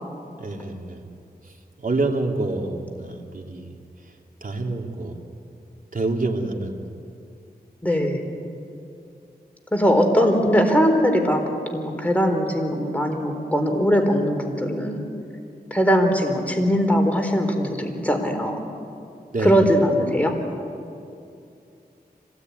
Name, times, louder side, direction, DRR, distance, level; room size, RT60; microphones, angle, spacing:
voice 1, 0.4-1.0 1.8-3.7 4.4-5.1 5.9-6.8 19.3-19.6, right 2 dB, 55° right, 1 dB, 3.2 m, -27 dB
voice 2, 7.8-8.2 9.7-11.4 11.7-15.1 15.7-18.6 19.4-20.4, equal, 10° left, 3 dB, 4.0 m, -20 dB
26.0 x 19.0 x 9.6 m, 2.6 s
wide cardioid pair, 55°, 17 cm